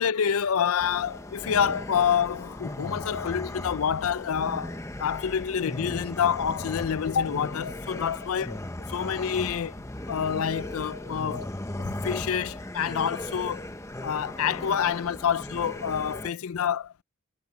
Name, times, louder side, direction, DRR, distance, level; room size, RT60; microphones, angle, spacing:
voice 1, 0.0-8.6 8.9-11.5 11.8-13.6 14.0-16.9, left 8 dB, 75° left, 0.4 m, -27 dB
sound 1, 0.8-16.3, left 1 dB, 15° left, 1.0 m, -37 dB
head